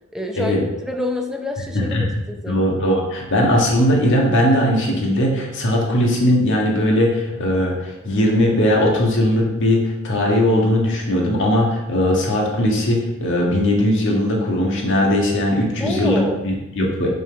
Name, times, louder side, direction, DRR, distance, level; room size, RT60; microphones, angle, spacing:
voice 1, 0.1-2.6 15.8-16.4, left 1 dB, 5° right, 3 dB, 0.7 m, -27 dB
voice 2, 1.7-2.1 2.5-17.1, left 1 dB, 60° left, -1 dB, 1.5 m, -19 dB
6.0 x 3.7 x 5.8 m, 0.96 s
head